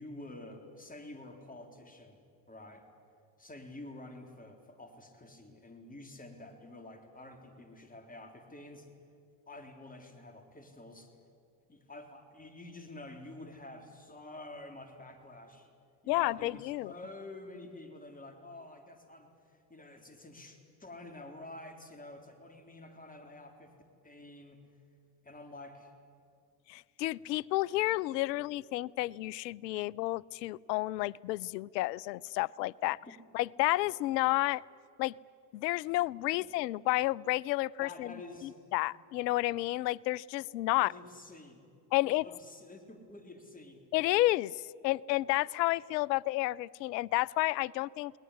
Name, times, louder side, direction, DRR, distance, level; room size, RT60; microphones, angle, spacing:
voice 1, 0.0-2.2 2.5-2.9 3.4-8.9 9.5-11.1 11.7-15.7 16.0-23.7 24.0-24.6 25.2-25.9 33.1-33.2 36.3-36.6 37.8-38.8 40.8-41.7 42.0-43.8, left 2 dB, 15° left, 6 dB, 3.8 m, -49 dB
voice 2, 16.1-16.9 26.7-33.0 33.3-34.6 35.0-35.1 35.5-38.1 38.4-40.9 41.9-42.3 43.9-48.1, left 18 dB, 75° left, 25 dB, 0.6 m, -31 dB
21.0 x 19.0 x 10.0 m, 2.5 s
hypercardioid pair, 75°, 50 cm